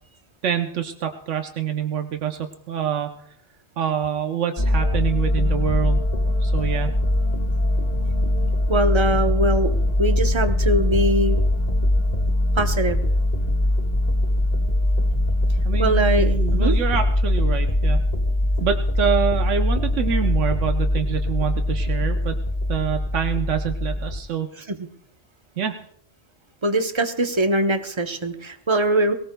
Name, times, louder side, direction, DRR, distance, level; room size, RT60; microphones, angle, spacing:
voice 1, 0.4-3.1 3.8-6.1 6.4-6.9 15.6-18.1 18.6-22.4 22.7-24.5 25.6-25.8, right 8 dB, 85° right, 6 dB, 1.1 m, -26 dB
sound 1, 4.6-24.2, left 1 dB, 35° left, 1.6 m, -21 dB
voice 2, 8.7-11.4 12.6-13.0 15.8-16.8 24.7-24.9 26.6-29.1, right 1 dB, 30° right, 7 dB, 0.7 m, -22 dB
22.0 x 18.0 x 2.2 m, 0.71 s
omnidirectional pair, 1.2 m